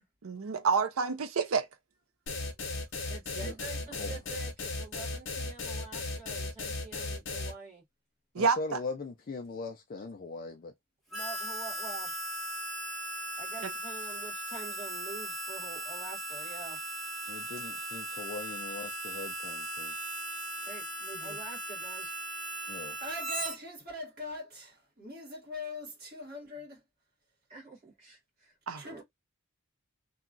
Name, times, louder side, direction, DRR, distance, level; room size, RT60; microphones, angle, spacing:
voice 1, 0.2-1.6 8.3-8.8 28.7-28.8, right 5 dB, 80° right, 0.5 m, -28 dB
sound 1, 2.3-7.5, left 3 dB, 60° left, 0.8 m, -36 dB
voice 2, 3.1-7.8 11.1-12.1 13.4-16.8 20.6-20.8 21.2-22.1 27.5-28.6 28.8-29.0, right 4 dB, 30° right, 1.2 m, -47 dB
voice 3, 8.4-10.7 17.3-19.9 22.7-23.0, left 3 dB, 40° left, 0.4 m, -40 dB
Harmonica, 11.1-23.5, right 1 dB, ahead, 1.1 m, -38 dB
voice 4, 21.0-21.4 22.7-26.8 28.7-29.0, left 1 dB, 45° right, 1.7 m, -42 dB
2.9 x 2.3 x 2.4 m
head